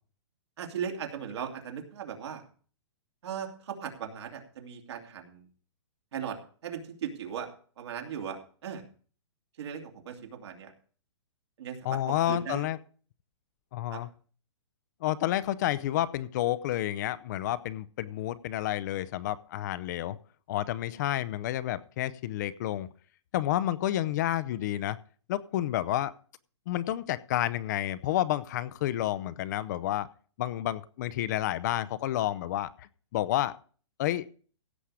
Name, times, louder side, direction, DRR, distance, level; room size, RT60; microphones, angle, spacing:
voice 1, 0.6-2.4 3.2-5.5 6.1-7.5 7.8-8.8 9.6-10.7 11.6-12.7 13.9-14.0, right 8 dB, 65° right, 3 dB, 2.8 m, -38 dB
voice 2, 11.8-12.8 13.7-14.1 15.0-20.2 20.5-22.9 23.3-25.0 25.3-26.1 26.7-30.1 30.4-33.6 34.0-34.3, left 13 dB, 40° left, 14 dB, 0.6 m, -30 dB
16.5 x 7.2 x 4.9 m, 0.42 s
hypercardioid pair, 155°, 15 cm